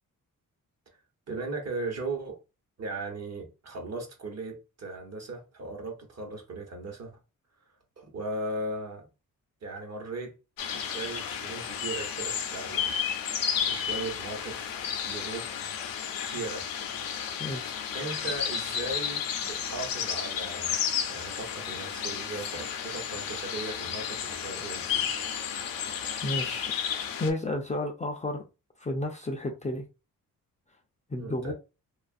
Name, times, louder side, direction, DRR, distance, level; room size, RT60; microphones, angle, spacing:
voice 1, 1.3-2.4 2.8-7.2 8.0-9.1 9.6-10.3 10.7-13.0 13.7-15.5 16.2-16.7 17.9-20.8 21.1-25.1 31.2-31.5, right 2 dB, 50° right, 1.0 m, -37 dB
sound 1, 10.6-27.3, left 8 dB, 75° left, 0.6 m, -32 dB
voice 2, 17.4-17.7 22.5-22.6 26.2-26.7 27.2-28.4 28.8-29.8 31.1-31.5, left 1 dB, 20° left, 0.4 m, -32 dB
2.5 x 2.4 x 2.4 m
cardioid pair, 105°, 34 cm